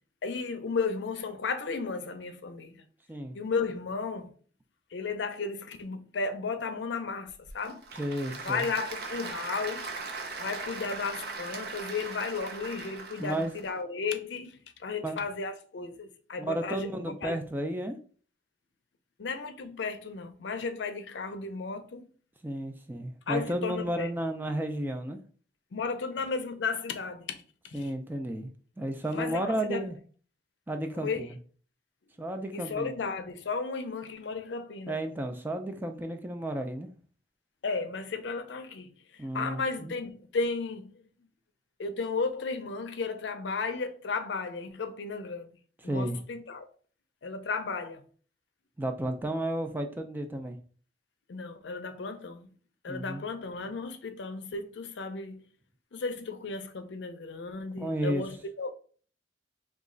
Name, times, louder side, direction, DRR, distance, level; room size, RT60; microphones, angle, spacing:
voice 1, 0.2-2.8 3.3-4.3 4.9-7.8 8.4-9.9 10.4-17.4 19.2-22.1 23.3-24.1 25.7-27.9 29.1-29.8 31.0-31.3 32.5-35.0 37.6-41.0 41.8-45.5 45.8-46.7 47.2-48.0 51.3-52.5 52.8-55.4 55.9-58.7, left 4 dB, 80° left, 0.5 m, -34 dB
Applause / Crowd, 7.3-13.7, right 3 dB, 60° right, 0.6 m, -39 dB
voice 2, 8.0-8.7 13.2-13.5 15.0-15.2 16.4-18.0 22.4-25.2 27.7-28.5 28.8-30.0 30.7-31.4 32.2-32.9 34.9-36.9 39.2-39.9 45.8-46.2 48.8-50.6 52.9-53.2 57.8-58.2, right 1 dB, 10° right, 0.3 m, -32 dB
3.0 x 2.3 x 3.7 m
head